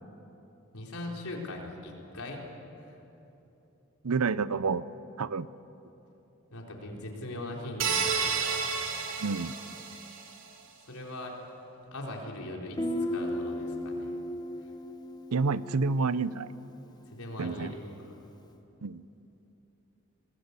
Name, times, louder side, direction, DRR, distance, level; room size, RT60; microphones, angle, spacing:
voice 1, 0.7-2.4 2.8-2.9 6.5-8.5 10.9-11.4 11.9-12.8 13.1-14.1 14.6-14.7 17.1-18.1, left 1 dB, 90° left, -1 dB, 4.2 m, -40 dB
voice 2, 4.0-4.8 5.2-5.5 9.2-9.5 15.3-16.5 17.4-17.7 18.8-19.0, right 4 dB, 85° right, 16 dB, 0.7 m, -28 dB
sound 1, 7.8-10.3, right 6 dB, 60° right, 3.1 m, -31 dB
Guitar, 12.8-16.4, left 1 dB, 20° left, 1.0 m, -35 dB
26.0 x 19.5 x 8.3 m, 3.0 s
head